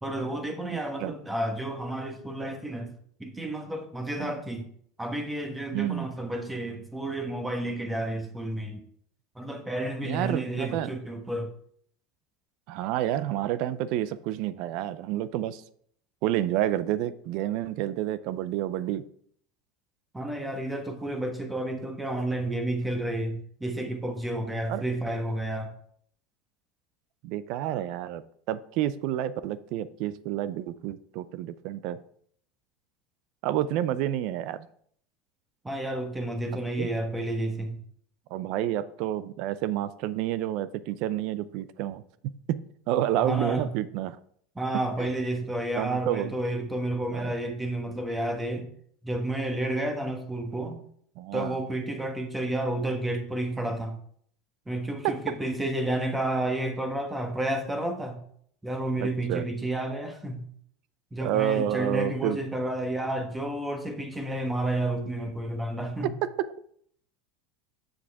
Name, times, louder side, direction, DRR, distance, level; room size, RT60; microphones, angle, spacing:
voice 1, 0.0-2.9 3.2-4.6 5.0-8.8 9.3-11.5 20.1-25.7 35.6-37.8 43.2-43.7 44.5-48.7 49.0-50.8 51.3-54.0 54.7-58.2 58.6-60.5 61.1-66.1, right 1 dB, 10° right, 4 dB, 1.2 m, -31 dB
voice 2, 0.7-1.1 4.2-4.3 5.7-6.1 10.0-10.9 12.7-15.6 16.2-19.0 24.7-24.8 27.2-28.2 28.5-32.0 33.4-34.7 36.8-36.9 38.3-42.6 42.9-44.2 45.8-46.3 47.1-47.4 51.2-51.6 55.0-55.1 59.0-59.5 61.2-62.4 66.4-66.5, right 12 dB, 65° right, 15 dB, 0.5 m, -29 dB
7.3 x 6.5 x 3.5 m, 0.63 s
supercardioid pair, 120°, 0 cm